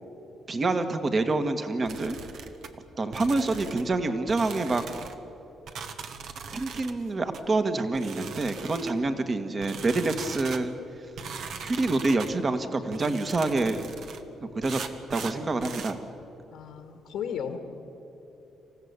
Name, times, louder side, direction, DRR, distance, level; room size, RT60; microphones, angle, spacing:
voice 1, 0.5-2.2 3.0-4.8 6.5-10.7 11.6-13.8 14.4-14.8 15.1-16.0, right 3 dB, 35° right, 8 dB, 1.6 m, -27 dB
sound 1, 1.9-2.7 3.1-3.9 4.3-5.2 5.7-7.0 7.3-7.5 7.9-9.0 9.6-10.6 11.2-12.3 12.9-14.2 14.6-16.0, right 5 dB, 70° right, 1.4 m, -40 dB
voice 2, 16.5-17.6, left 8 dB, 85° left, 6 dB, 1.9 m, -34 dB
27.0 x 15.0 x 8.2 m, 3.0 s
cardioid pair, 90°, 0 cm